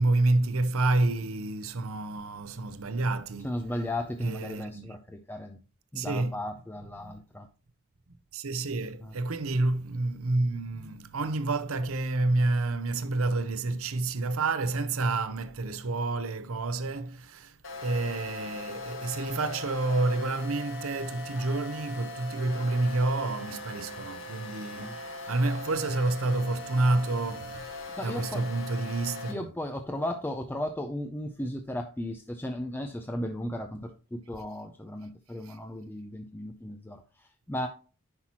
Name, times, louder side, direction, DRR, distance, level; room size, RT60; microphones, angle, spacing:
voice 1, 0.0-3.5 4.2-4.9 6.0-6.4 7.0-7.2 8.3-29.4 35.4-35.6, right 2 dB, 70° right, 0.7 m, -29 dB
voice 2, 3.4-5.6 5.9-7.5 9.0-9.1 24.8-25.0 28.0-28.4 29.3-37.7, left 1 dB, 10° left, 0.4 m, -35 dB
sound 1, 17.6-29.3, left 2 dB, 60° left, 2.0 m, -40 dB
9.7 x 5.9 x 3.0 m
head